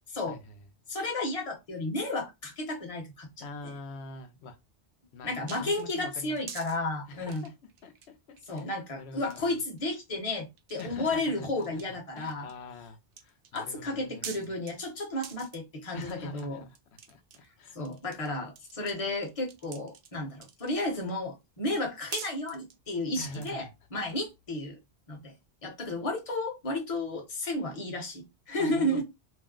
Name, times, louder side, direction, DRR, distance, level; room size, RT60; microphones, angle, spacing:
voice 1, 0.3-0.7 3.4-4.6 5.1-6.4 7.1-7.5 7.8-8.7 8.9-9.5 10.8-14.6 15.9-16.8 17.1-17.8 23.2-23.7 28.6-29.0, left 2 dB, 75° left, 0.9 m, -44 dB
voice 2, 0.9-3.5 5.2-7.5 8.5-12.5 13.5-16.6 17.7-24.8 25.1-25.3 25.6-29.0, left 2 dB, 35° left, 0.8 m, -33 dB
sound 1, 5.5-6.8 7.2-8.1 8.4-8.6 9.2-9.9 10.2-10.3 10.6-11.3 11.6-12.6 13.1-13.6 14.2-14.7 15.2-15.6 16.0-16.5 16.7-18.3 18.6-20.8 21.7-21.8 22.1-23.6, right 7 dB, 60° right, 0.7 m, -45 dB
2.6 x 2.0 x 3.6 m
omnidirectional pair, 1.1 m